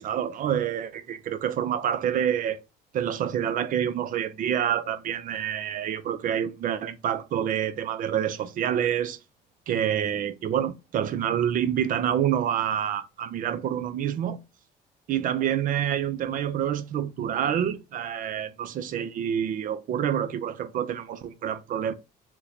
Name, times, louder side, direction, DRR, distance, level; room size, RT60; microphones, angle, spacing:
voice 1, 0.0-2.6 2.9-9.2 9.7-14.4 15.1-21.9, right 9 dB, 55° right, 0.5 m, -27 dB
2.8 x 2.2 x 3.8 m
cardioid pair, 110°, 17 cm